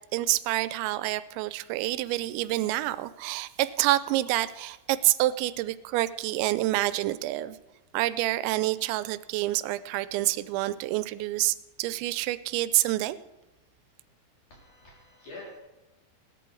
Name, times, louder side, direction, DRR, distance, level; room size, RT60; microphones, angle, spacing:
voice 1, 0.1-7.6 7.9-13.2, right 16 dB, 90° right, 15 dB, 2.9 m, -27 dB
voice 2, 14.5-15.6, left 2 dB, 45° left, -3 dB, 4.2 m, -46 dB
17.5 x 12.5 x 3.9 m, 1.1 s
omnidirectional pair, 5.1 m